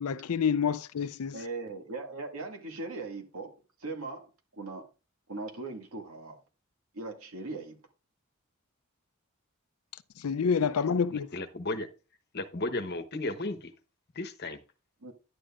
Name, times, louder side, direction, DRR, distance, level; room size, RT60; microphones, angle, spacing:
voice 1, 0.0-1.4 10.2-11.3, left 6 dB, 85° left, 0.5 m, -28 dB
voice 2, 1.3-3.5 3.8-4.3 4.6-4.9 5.3-6.4 6.9-7.8 15.0-15.1, right 3 dB, 80° right, 2.0 m, -39 dB
voice 3, 11.3-11.9 12.3-13.6 14.2-14.6, left 2 dB, 50° left, 1.0 m, -34 dB
11.0 x 9.3 x 2.5 m
head